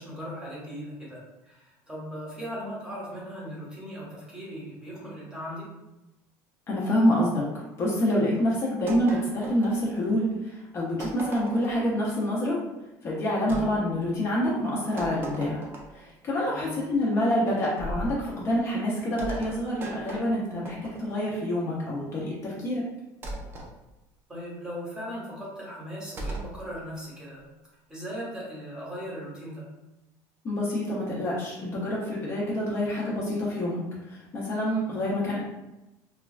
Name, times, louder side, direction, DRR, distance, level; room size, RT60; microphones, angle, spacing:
voice 1, 0.0-5.7 13.4-13.6 16.4-16.7 24.3-27.4 27.9-29.7, equal, 10° right, -5 dB, 0.8 m, -38 dB
voice 2, 6.7-7.4 7.8-12.6 13.0-15.6 16.2-22.8 30.4-33.8 34.3-35.4, left 1 dB, 30° left, -5 dB, 0.5 m, -27 dB
sound 1, 8.9-10.3 11.0-11.8 13.5-13.7 15.0-16.1 17.8-18.2 19.2-21.3 23.2-23.7 26.2-26.6, right 1 dB, 25° right, 0.4 m, -38 dB
3.0 x 2.2 x 2.3 m, 0.98 s
cardioid pair, 160°, 8 cm